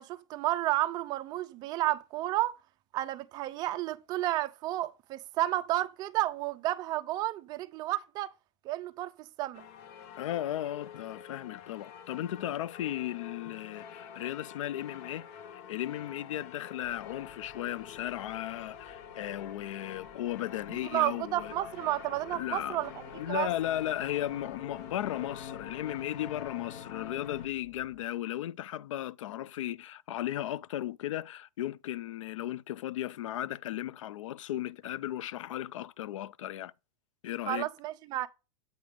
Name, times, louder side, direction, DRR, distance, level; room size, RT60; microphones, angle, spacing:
voice 1, 0.0-2.6 2.9-8.3 8.6-9.6 20.9-23.5 37.5-38.3, right 15 dB, 25° right, 0.4 m, -31 dB
sound 1, 9.5-27.5, left 8 dB, 55° left, 0.9 m, -46 dB
voice 2, 10.2-15.3 15.5-21.5 22.3-22.8 23.2-36.7 37.2-37.7, left 13 dB, 75° left, 0.4 m, -36 dB
sound 2, 16.8-28.1, left 3 dB, 35° left, 1.8 m, -59 dB
7.9 x 3.4 x 4.9 m
supercardioid pair, 150°, 16 cm